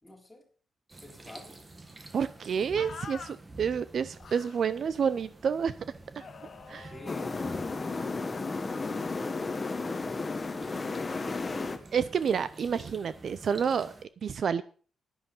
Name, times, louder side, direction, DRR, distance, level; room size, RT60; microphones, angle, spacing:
voice 1, 0.0-0.5 1.0-1.6 6.8-11.8, left 1 dB, 5° left, -1 dB, 3.7 m, -50 dB
sound 1, 0.9-14.0, right 2 dB, 20° right, 1.4 m, -49 dB
voice 2, 2.1-5.7 6.2-6.3 6.7-6.9 11.9-13.9 14.2-14.6, right 7 dB, 50° right, 15 dB, 0.5 m, -29 dB
sound 2, 2.7-3.4 4.2-4.7 6.2-8.5, left 6 dB, 45° left, 1.0 m, -47 dB
sound 3, 7.1-11.8, left 3 dB, 25° left, 1.3 m, -33 dB
11.0 x 10.5 x 5.4 m, 0.42 s
wide cardioid pair, 155°, 0 cm